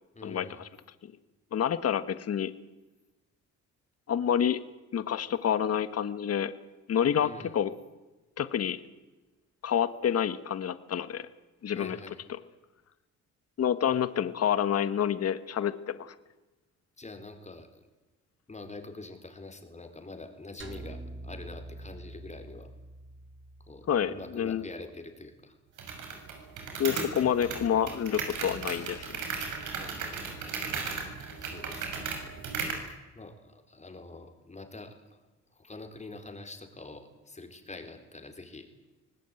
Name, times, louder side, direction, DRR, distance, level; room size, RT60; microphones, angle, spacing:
voice 1, 0.1-0.6 7.2-7.5 11.7-12.2 17.0-17.8 18.5-22.7 23.7-25.6 27.1-27.2 29.8-30.6 31.4-32.1 32.8-35.2 35.5-38.7, left 2 dB, 25° left, 6 dB, 4.3 m, -45 dB
voice 2, 1.5-2.5 4.1-4.6 4.9-6.5 6.9-7.7 8.4-8.8 9.6-11.3 11.6-12.0 13.6-16.1 23.9-24.6 26.8-29.1, left 9 dB, 55° left, 13 dB, 1.5 m, -28 dB
sound 1, 20.6-25.0, right 2 dB, 40° right, 4.6 m, -46 dB
sound 2, 25.8-32.9, right 5 dB, 80° right, 6.2 m, -36 dB
24.5 x 18.5 x 9.1 m, 1.1 s
cardioid pair, 90°, 30 cm